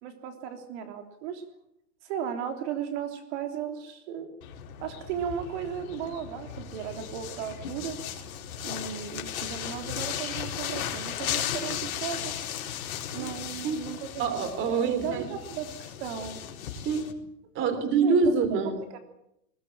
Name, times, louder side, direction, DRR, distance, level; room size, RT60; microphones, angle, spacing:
voice 1, 0.0-1.4 2.0-4.4 4.8-8.0 8.6-12.3 13.1-14.2 14.6-16.4 17.6-18.2 18.5-19.0, right 8 dB, 50° right, 6 dB, 3.3 m, -36 dB
sound 1, 4.4-17.1, left 9 dB, 70° left, 4.4 m, -36 dB
voice 2, 14.2-15.2 16.8-17.2 17.5-18.7, right 5 dB, 30° right, 10 dB, 3.4 m, -25 dB
21.5 x 19.5 x 9.0 m, 0.80 s
supercardioid pair, 150°, 43 cm